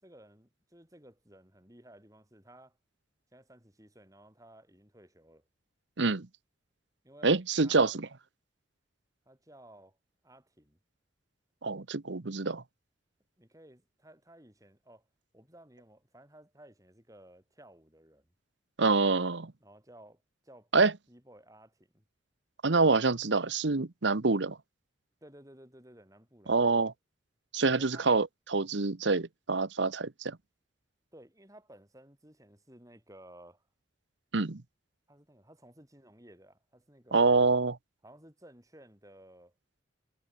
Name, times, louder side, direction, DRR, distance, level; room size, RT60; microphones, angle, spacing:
voice 1, 0.0-2.8 3.3-5.5 7.0-7.3 7.6-8.0 9.3-10.0 10.2-10.8 13.4-15.1 15.3-18.3 19.6-20.7 21.1-22.0 25.2-26.9 27.7-28.1 31.1-33.7 35.1-37.4 38.0-39.5, right 1 dB, 20° right, 7.4 m, -56 dB
voice 2, 6.0-6.3 7.2-8.1 11.6-12.6 18.8-19.5 20.7-20.9 22.6-24.6 26.5-26.9 27.5-30.4 34.3-34.6 37.1-37.7, right 3 dB, 75° right, 1.1 m, -26 dB
head